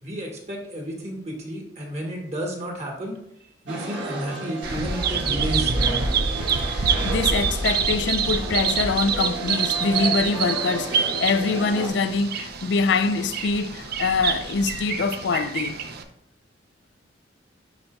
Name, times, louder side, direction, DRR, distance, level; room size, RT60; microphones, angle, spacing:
voice 1, 0.0-3.2 3.6-6.0, equal, 40° right, 1.4 m, -32 dB
sound 1, 3.7-11.9, right 3 dB, 90° right, 1.4 m, -33 dB
Bird vocalization bird call bird song, 4.6-16.0, right 6 dB, 60° right, 0.6 m, -26 dB
voice 2, 6.6-15.8, left 4 dB, 65° left, 0.4 m, -24 dB
10.5 x 4.0 x 2.3 m
head